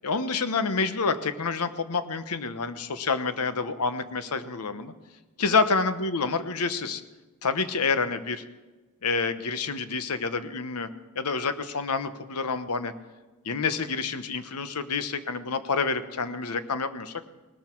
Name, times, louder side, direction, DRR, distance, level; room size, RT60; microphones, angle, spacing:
voice 1, 0.0-4.9 5.4-7.0 7.4-8.4 9.0-10.9 11.1-12.9 13.4-17.1, left 4 dB, 90° left, 11 dB, 1.0 m, -28 dB
19.0 x 13.0 x 4.6 m, 1.2 s
head